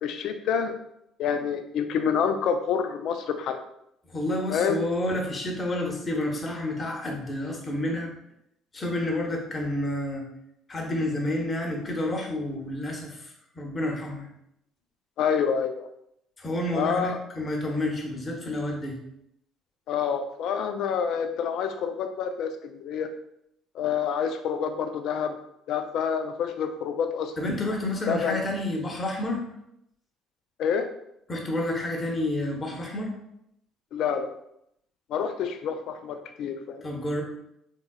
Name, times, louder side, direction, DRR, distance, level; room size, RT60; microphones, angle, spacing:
voice 1, 0.0-0.7 1.2-3.6 4.5-4.8 9.1-9.4 15.2-15.9 16.7-17.2 19.9-23.1 23.7-25.3 25.7-27.3 28.1-28.4 30.6-30.9 33.9-34.3 35.1-36.8, left 7 dB, 60° left, 8 dB, 0.4 m, -27 dB
voice 2, 4.1-8.1 8.7-10.2 10.7-14.3 16.4-19.0 27.4-29.4 31.3-33.1 36.8-37.2, left 1 dB, 30° left, 1 dB, 1.0 m, -29 dB
3.8 x 3.7 x 2.2 m, 0.77 s
figure-of-eight pair, 50°, 0 cm